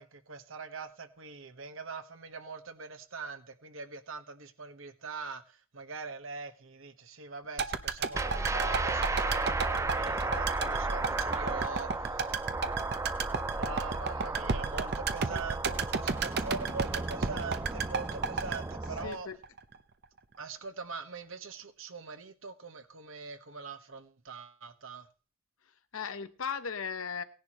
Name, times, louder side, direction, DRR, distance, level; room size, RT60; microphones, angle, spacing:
voice 1, 0.0-12.4 13.5-19.3 20.4-25.1, right 4 dB, 70° right, 7 dB, 1.3 m, -42 dB
sound 1, 7.6-19.8 20.0-20.1, right 5 dB, 50° right, 0.8 m, -33 dB
sound 2, 8.1-19.1, right 3 dB, 15° right, 0.5 m, -34 dB
voice 2, 19.0-19.4 25.9-27.2, left 6 dB, 80° left, 11 dB, 0.9 m, -37 dB
18.0 x 10.5 x 3.1 m, 0.37 s
head